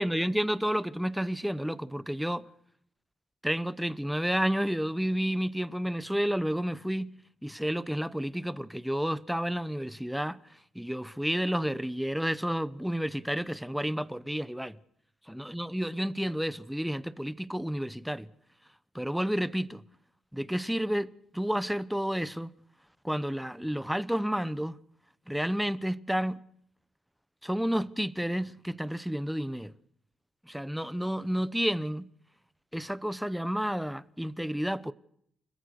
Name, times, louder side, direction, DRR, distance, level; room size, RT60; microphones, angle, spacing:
voice 1, 0.0-2.4 3.4-7.2 7.4-10.4 10.8-14.8 15.3-18.3 18.9-19.8 20.3-22.5 23.0-24.7 25.3-26.4 27.4-29.7 30.5-32.1 32.7-34.9, equal, ahead, 0.8 m, -30 dB
30.0 x 14.5 x 6.5 m
cardioid pair, 90°, 0 cm